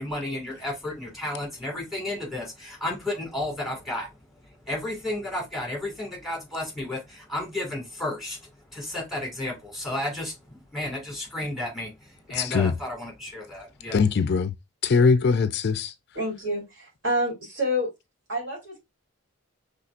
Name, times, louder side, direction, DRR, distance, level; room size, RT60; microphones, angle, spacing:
voice 1, 0.0-4.1 4.6-14.0, left 1 dB, ahead, 2.0 m, -33 dB
voice 2, 12.3-12.7 13.9-14.5 14.8-15.9, left 5 dB, 50° left, 0.4 m, -21 dB
voice 3, 16.1-17.9 18.3-18.8, equal, 60° right, 3.0 m, -28 dB
5.7 x 3.4 x 2.5 m
head